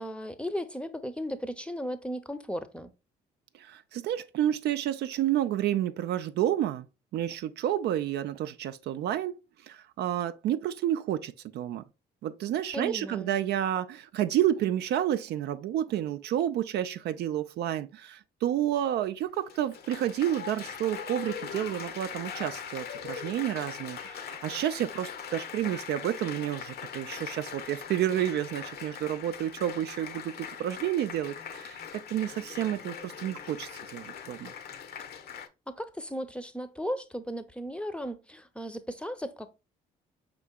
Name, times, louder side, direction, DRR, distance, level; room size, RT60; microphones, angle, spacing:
voice 1, 0.0-2.9 12.7-13.4 35.7-39.5, equal, 5° left, 0.6 m, -36 dB
voice 2, 3.5-6.9 7.1-9.3 9.6-11.8 12.2-34.5, right 11 dB, 60° right, 0.4 m, -30 dB
Applause, 19.2-35.5, left 7 dB, 55° left, 0.7 m, -41 dB
4.8 x 3.8 x 2.2 m
supercardioid pair, 60°, 19 cm